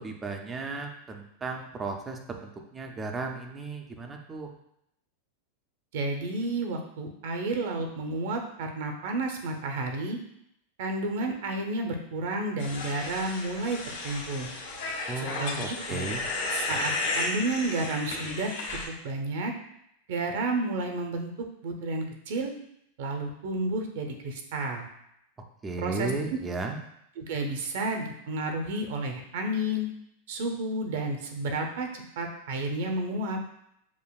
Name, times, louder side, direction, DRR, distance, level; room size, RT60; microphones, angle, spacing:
voice 1, 0.0-4.5 15.1-16.2 25.6-26.8, right 3 dB, 10° right, 3 dB, 0.4 m, -35 dB
voice 2, 5.9-10.2 10.8-13.8 14.0-14.5 15.2-16.1 16.5-19.5 20.1-21.3 21.6-22.5 23.0-24.9 25.8-26.1 27.2-29.9 30.3-31.9 32.2-33.4, right 2 dB, 55° right, 4 dB, 0.7 m, -31 dB
sound 1, 12.6-18.9, left 3 dB, 75° left, 1.5 m, -33 dB
7.1 x 2.5 x 2.3 m, 0.77 s
supercardioid pair, 170°, 0 cm